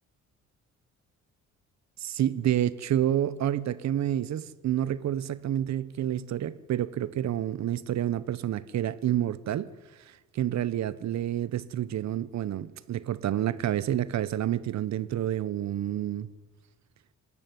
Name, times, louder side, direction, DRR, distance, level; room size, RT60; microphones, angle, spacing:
voice 1, 2.0-9.7 10.3-16.3, right 11 dB, 65° right, 0.9 m, -29 dB
20.0 x 14.0 x 9.4 m
cardioid pair, 90°, 30 cm